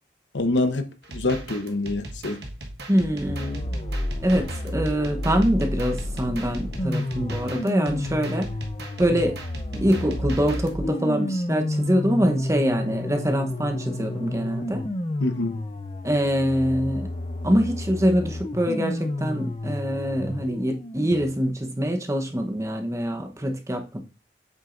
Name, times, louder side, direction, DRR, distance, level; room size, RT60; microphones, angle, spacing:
voice 1, 0.3-0.9 1.1-2.4 15.2-15.6, left 2 dB, 85° left, 1.0 m, -25 dB
sound 1, 1.0-10.8, right 2 dB, 60° right, 1.4 m, -39 dB
voice 2, 2.9-3.6 4.2-8.5 9.0-9.4 9.7-14.8 16.0-17.1 17.4-24.0, equal, 15° right, 1.0 m, -24 dB
sound 2, 3.3-21.3, left 1 dB, 30° left, 0.7 m, -31 dB
8.2 x 7.3 x 2.6 m
head